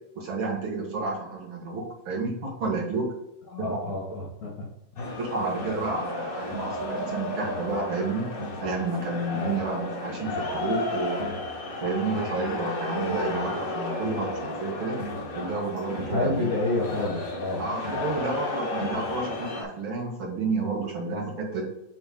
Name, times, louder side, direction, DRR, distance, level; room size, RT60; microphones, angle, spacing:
voice 1, 0.2-3.1 3.6-3.8 5.2-8.3 8.6-11.3 11.8-15.0 15.3-16.5 17.6-21.6, right 3 dB, 45° right, -1 dB, 2.0 m, -30 dB
voice 2, 3.5-4.7 5.0-5.1 16.0-17.7, left 2 dB, 50° left, -3 dB, 1.1 m, -29 dB
sound 1, 5.0-19.6, left 2 dB, 70° left, 0.8 m, -33 dB
8.4 x 3.3 x 3.6 m, 0.85 s
omnidirectional pair, 3.7 m